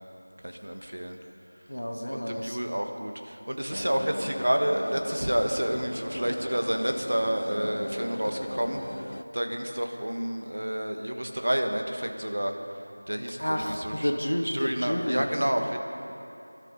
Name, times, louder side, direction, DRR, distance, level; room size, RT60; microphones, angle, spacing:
voice 1, 0.4-1.2 2.1-8.8 9.3-12.5 13.1-14.1 14.4-15.8, equal, 50° right, 4 dB, 1.3 m, -29 dB
voice 2, 1.7-2.6 13.4-15.3, equal, 85° left, 3 dB, 1.8 m, -30 dB
sound 1, 3.7-9.2, equal, 65° left, 0.7 m, -37 dB
22.0 x 12.5 x 5.3 m, 2.8 s
figure-of-eight pair, 180°, 0 cm